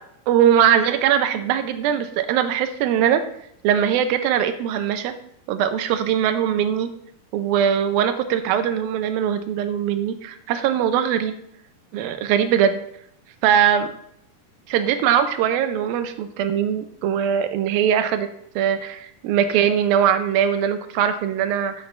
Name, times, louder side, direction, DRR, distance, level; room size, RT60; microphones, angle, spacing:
voice 1, 0.3-3.2 3.6-5.1 5.5-6.9 7.3-11.3 11.9-12.8 13.4-13.9 14.7-18.3 18.6-21.7, right 9 dB, 85° right, 10 dB, 2.6 m, -21 dB
10.0 x 8.3 x 3.3 m, 0.71 s
omnidirectional pair, 4.1 m